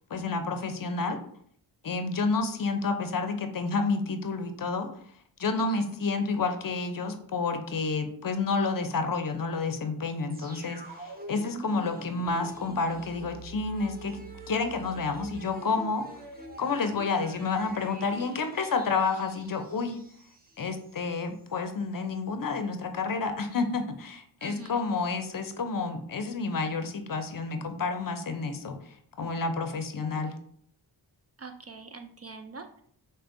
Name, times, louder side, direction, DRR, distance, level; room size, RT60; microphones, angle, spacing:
voice 1, 0.1-1.2 1.8-4.9 5.4-14.2 14.5-16.1 16.6-20.0 20.6-28.8 29.2-30.4, left 4 dB, 45° left, 7 dB, 0.6 m, -30 dB
sound 1, 10.3-21.1 21.4-21.5, right 2 dB, 20° right, 0.7 m, -46 dB
voice 2, 24.4-24.7 31.4-32.8, right 4 dB, 35° right, 6 dB, 0.4 m, -44 dB
6.3 x 2.2 x 2.6 m, 0.62 s
cardioid pair, 45°, 47 cm